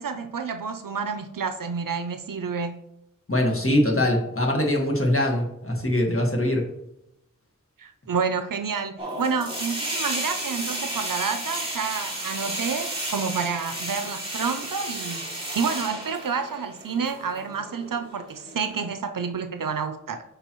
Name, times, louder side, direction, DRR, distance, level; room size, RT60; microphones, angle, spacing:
voice 1, 0.0-2.8 7.8-20.2, right 5 dB, 80° right, 0.6 m, -29 dB
voice 2, 3.3-6.7, left 1 dB, 40° left, 1.6 m, -22 dB
sound 1, 9.0-18.9, right 1 dB, 15° right, 2.4 m, -33 dB
8.6 x 5.4 x 3.0 m
wide cardioid pair, 60°, 33 cm